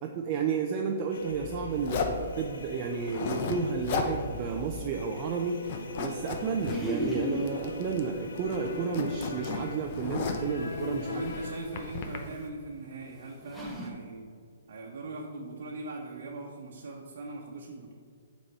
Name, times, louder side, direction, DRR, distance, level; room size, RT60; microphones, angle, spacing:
voice 1, 0.0-5.6 6.0-11.2, right 5 dB, 25° right, 2 dB, 0.5 m, -32 dB
sound 1, 1.1-11.6, left 2 dB, 90° left, 0.9 m, -40 dB
Zipper (clothing), 1.8-2.2 3.0-3.6 3.8-4.1 4.5-4.6 4.9-5.4 5.6-6.8 7.5-8.1 8.4-10.5 11.1-12.2, left 5 dB, 40° left, 0.7 m, -34 dB
sound 2, 6.6-7.5 9.5-9.6 10.7-10.8 12.3-12.4 13.1-13.2 13.4-13.9, right 1 dB, 5° left, 0.8 m, -33 dB
voice 2, 11.0-14.3 14.7-17.9, right 2 dB, 55° right, -2 dB, 1.0 m, -40 dB
7.7 x 4.2 x 5.5 m, 2.2 s
hypercardioid pair, 165°, 0 cm